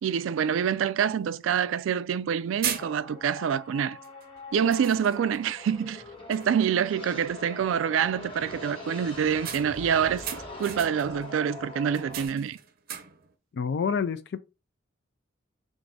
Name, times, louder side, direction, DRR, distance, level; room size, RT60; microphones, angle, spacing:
voice 1, 0.0-4.0 4.5-12.6, right 8 dB, 90° right, 0.3 m, -26 dB
sound 1, 0.8-0.9 1.3-1.4 2.1-2.3 2.6-3.3 4.0-4.3 4.7-5.5 5.9-6.0 6.3-6.7 9.4-11.2 11.9-13.3, right 9 dB, 50° right, 0.6 m, -37 dB
sound 2, 2.7-12.3, left 2 dB, 30° left, 1.4 m, -43 dB
voice 2, 13.5-14.4, left 6 dB, 60° left, 0.3 m, -28 dB
3.9 x 2.5 x 4.7 m
head